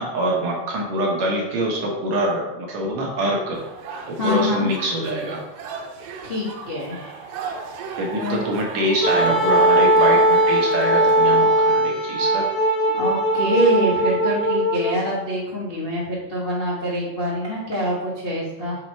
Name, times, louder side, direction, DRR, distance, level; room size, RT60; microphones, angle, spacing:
voice 1, 0.0-3.6 4.1-5.4 8.0-12.5, right 1 dB, 60° right, -2 dB, 2.3 m, -24 dB
sound 1, 3.5-11.2, right 5 dB, 90° right, 2.5 m, -35 dB
voice 2, 4.2-4.7 6.2-7.2 8.1-8.4 12.9-18.8, equal, 60° left, -6 dB, 0.5 m, -25 dB
Wind instrument woodwind instrument, 9.0-15.0, right 1 dB, 85° left, 3.5 m, -19 dB
7.5 x 4.7 x 4.6 m, 0.96 s
omnidirectional pair, 3.9 m